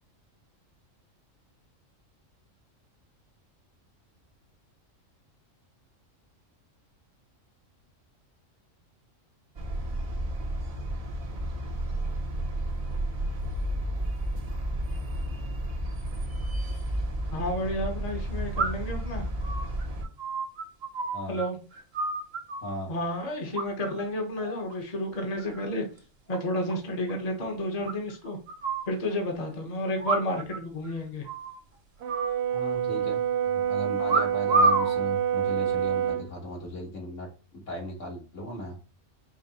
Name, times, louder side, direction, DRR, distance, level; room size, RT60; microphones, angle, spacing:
sound 1, 9.6-20.0, right 1 dB, 35° right, 0.7 m, -32 dB
sound 2, 16.8-16.9 18.6-19.0 19.4-21.5 21.7-22.8 23.5-24.1 24.4-24.7 25.1-25.7 26.0-26.1 26.3-26.4 26.7-26.8 27.1-27.2 27.9-28.9 30.0-30.6 30.8-30.9 31.3-31.6 32.1-33.0 34.1-34.9 35.7-36.0, right 3 dB, 55° right, 1.3 m, -29 dB
voice 1, 17.3-19.2 21.3-21.6 22.9-25.8 26.3-28.4 28.9-31.3, left 1 dB, 35° left, 2 dB, 0.9 m, -31 dB
voice 2, 22.6-22.9 32.5-37.3 37.7-38.9, left 1 dB, 70° left, -1 dB, 1.7 m, -37 dB
Brass instrument, 32.0-36.3, right 9 dB, 70° right, 0.9 m, -27 dB
5.2 x 2.1 x 4.0 m, 0.33 s
omnidirectional pair, 1.3 m